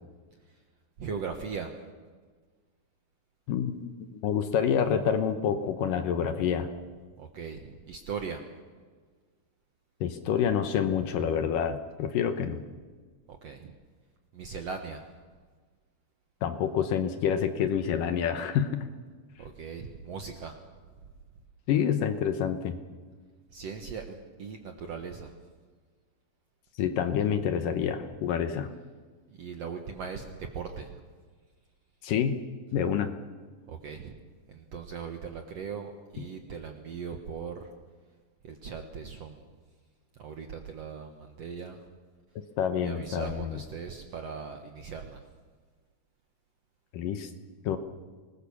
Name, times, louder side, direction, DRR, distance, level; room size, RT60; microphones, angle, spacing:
voice 1, 1.0-1.7 7.2-8.4 13.3-13.7 14.3-15.0 19.4-20.6 23.5-25.3 29.3-31.0 33.7-34.2 34.5-37.7 38.4-39.5 40.2-41.8 42.8-45.3, right 6 dB, 60° right, 4 dB, 1.8 m, -39 dB
voice 2, 3.5-6.7 10.0-12.6 16.4-18.9 21.7-22.8 26.8-28.7 32.0-32.4 32.7-33.1 42.6-43.6 46.9-47.3 47.6-47.8, left 8 dB, 70° left, 9 dB, 2.4 m, -27 dB
25.0 x 20.0 x 7.1 m, 1.5 s
omnidirectional pair, 4.5 m